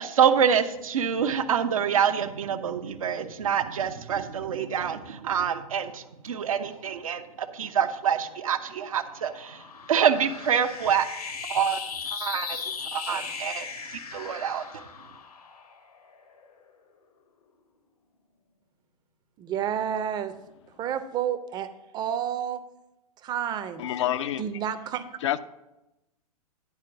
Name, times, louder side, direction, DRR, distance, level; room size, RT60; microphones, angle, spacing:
voice 1, 0.0-9.6 9.9-11.1 11.5-11.8 12.1-14.8, right 8 dB, 65° right, 9 dB, 0.7 m, -26 dB
sound 1, 8.1-16.7, left 6 dB, 75° left, 1.1 m, -38 dB
voice 2, 19.4-20.3 20.8-22.6 23.2-23.9 24.4-25.0, right 9 dB, 20° right, 11 dB, 0.6 m, -30 dB
voice 3, 23.8-24.4 25.2-25.4, left 12 dB, 50° left, 12 dB, 0.5 m, -27 dB
10.5 x 4.4 x 6.0 m, 0.93 s
figure-of-eight pair, 105°, 19 cm